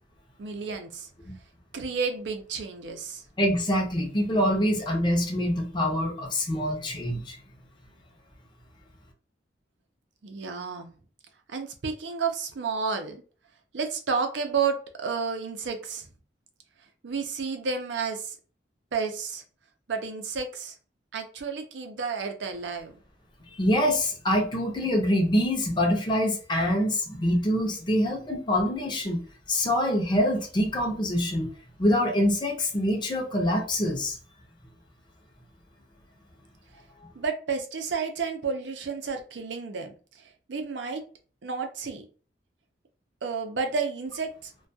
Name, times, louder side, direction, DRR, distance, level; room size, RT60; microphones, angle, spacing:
voice 1, 0.4-1.1 1.7-3.2 10.2-10.9 11.5-13.2 13.7-16.1 17.0-18.3 18.9-19.4 19.9-20.7 21.1-23.0 37.2-39.9 40.5-41.0 41.4-42.0 43.2-44.5, right 5 dB, 80° right, 5 dB, 0.5 m, -31 dB
voice 2, 3.4-7.4 23.5-31.5 31.8-34.2, equal, 25° left, 1 dB, 0.6 m, -25 dB
2.2 x 2.2 x 2.6 m, 0.39 s
head